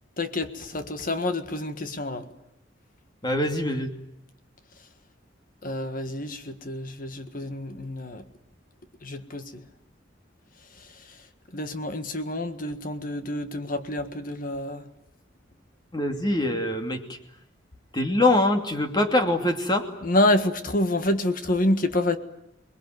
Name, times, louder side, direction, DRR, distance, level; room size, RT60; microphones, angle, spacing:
voice 1, 0.2-2.3 5.6-8.2 9.0-9.5 11.5-14.8 20.0-22.2, left 1 dB, 45° left, 9 dB, 1.7 m, -27 dB
voice 2, 3.2-3.9 15.9-17.0 17.9-19.9, left 1 dB, 25° left, 5 dB, 2.7 m, -23 dB
27.5 x 21.0 x 9.5 m, 0.79 s
head